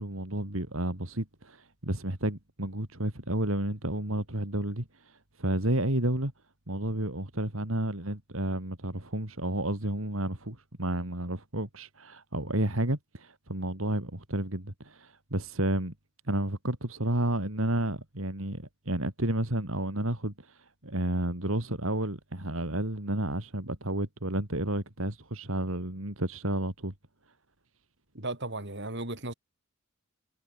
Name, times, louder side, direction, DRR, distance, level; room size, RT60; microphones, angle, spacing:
voice 1, 0.0-6.3 6.7-15.9 16.2-26.9, right 1 dB, 70° right, 3.8 m, -31 dB
voice 2, 28.1-29.3, right 2 dB, 55° right, 7.5 m, -35 dB
head